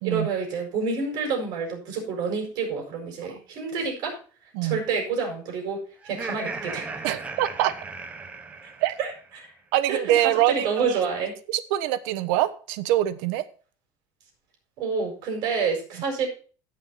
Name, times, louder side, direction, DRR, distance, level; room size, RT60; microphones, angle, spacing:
voice 1, 0.0-4.2 4.6-5.8 6.0-6.8 9.0-9.1 9.4-9.5 9.9-11.3 14.8-16.3, right 5 dB, 55° right, 6.9 m, -28 dB
Laughter, 6.0-9.3, right 3 dB, 15° right, 1.2 m, -36 dB
voice 2, 7.0-7.7 8.8-8.9 9.7-11.0 11.5-13.4, right 13 dB, 90° right, 1.1 m, -24 dB
17.0 x 6.4 x 4.2 m
cardioid pair, 160°, 8 cm